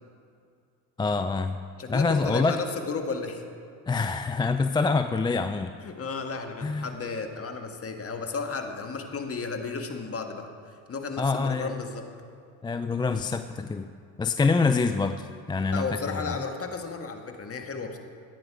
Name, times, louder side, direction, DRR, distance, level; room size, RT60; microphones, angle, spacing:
voice 1, 1.0-1.6 1.9-2.6 3.9-5.7 6.6-6.9 11.2-11.7 12.6-13.9 14.2-16.3, left 4 dB, 10° left, 8 dB, 0.4 m, -26 dB
voice 2, 1.8-3.4 5.8-12.1 15.7-18.0, left 4 dB, 35° left, 5 dB, 1.7 m, -33 dB
14.5 x 9.5 x 4.7 m, 2.3 s
hypercardioid pair, 65°, 41 cm